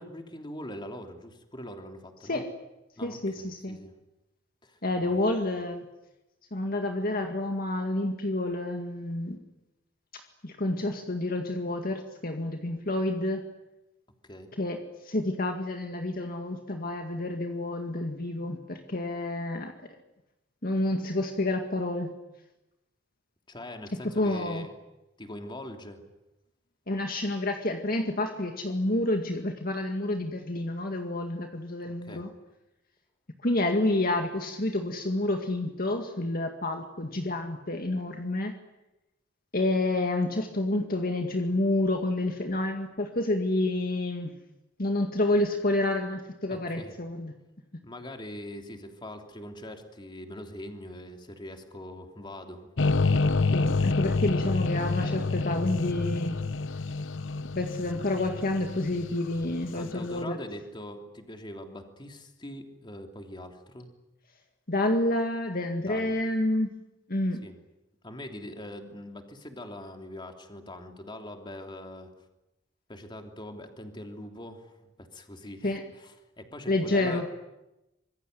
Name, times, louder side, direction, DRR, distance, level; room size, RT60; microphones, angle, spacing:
voice 1, 0.0-2.4 3.0-3.9 4.6-5.2 14.2-14.5 23.5-24.7 25.2-26.0 31.8-32.2 46.5-46.9 47.8-52.7 59.7-63.9 65.9-66.1 67.4-67.5 68.0-72.1 72.9-77.2, left 1 dB, 25° left, 4 dB, 3.2 m, -42 dB
voice 2, 3.0-3.8 4.8-5.9 6.5-9.4 10.4-13.4 14.6-19.7 20.6-22.1 24.0-24.7 26.9-32.3 33.4-38.5 39.5-44.3 44.8-47.3 53.5-56.4 57.5-60.4 64.7-66.7 67.1-67.4 75.6-75.8 76.7-77.3, left 1 dB, 50° left, 4 dB, 2.1 m, -29 dB
sound 1, 52.8-59.9, left 3 dB, 80° left, 0.9 m, -28 dB
25.5 x 22.0 x 9.5 m, 0.94 s
head